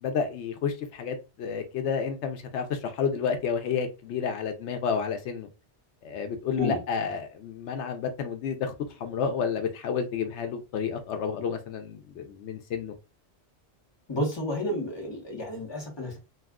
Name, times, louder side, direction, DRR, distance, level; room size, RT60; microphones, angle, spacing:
voice 1, 0.0-5.5 6.0-8.7 9.0-13.0, left 6 dB, 85° left, 0.9 m, -30 dB
voice 2, 14.1-16.2, left 1 dB, 25° left, 1.0 m, -31 dB
2.4 x 2.3 x 3.4 m
omnidirectional pair, 1.1 m